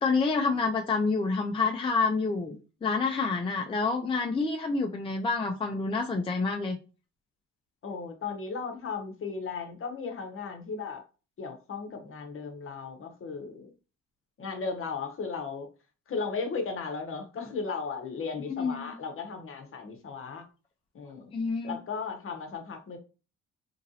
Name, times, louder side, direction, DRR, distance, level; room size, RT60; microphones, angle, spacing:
voice 1, 0.0-6.8 18.5-18.9 21.3-21.8, left 4 dB, 20° left, 0.4 m, -28 dB
voice 2, 7.8-11.0 11.4-13.7 14.4-15.7 16.1-20.5 20.9-21.3 21.6-23.0, left 4 dB, 45° left, 0.8 m, -36 dB
2.9 x 2.5 x 2.7 m
cardioid pair, 90°, 30 cm